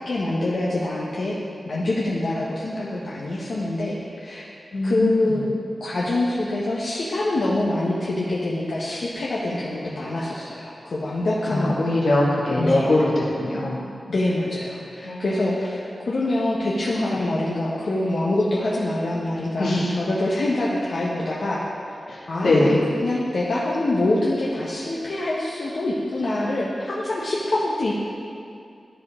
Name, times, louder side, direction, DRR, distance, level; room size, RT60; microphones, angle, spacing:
voice 1, 0.0-1.4 1.6-4.4 4.8-5.5 5.8-11.8 12.6-12.9 14.1-21.9 22.3-22.7 23.0-27.9, left 1 dB, 60° left, -6 dB, 1.0 m, -25 dB
voice 2, 4.7-5.3 11.5-13.8 15.0-15.5 19.6-20.0 22.1-22.9, left 2 dB, 80° left, -6 dB, 1.9 m, -22 dB
13.5 x 4.9 x 3.6 m, 2.4 s
wide cardioid pair, 140°, 0 cm